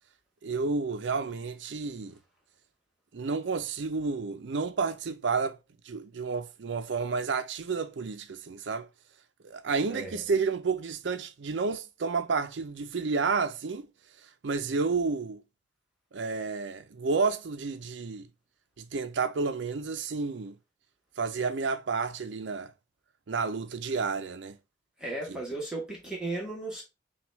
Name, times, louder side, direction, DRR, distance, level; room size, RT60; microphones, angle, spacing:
voice 1, 0.4-2.2 3.1-5.6 5.9-8.9 9.4-13.9 14.4-15.4 16.1-18.3 18.8-20.6 21.2-22.7 23.3-24.6 25.2-25.4, right 4 dB, 70° right, 0.5 m, -30 dB
voice 2, 9.9-10.2 25.0-26.8, right 2 dB, 5° right, 1.2 m, -35 dB
5.8 x 2.3 x 3.1 m
head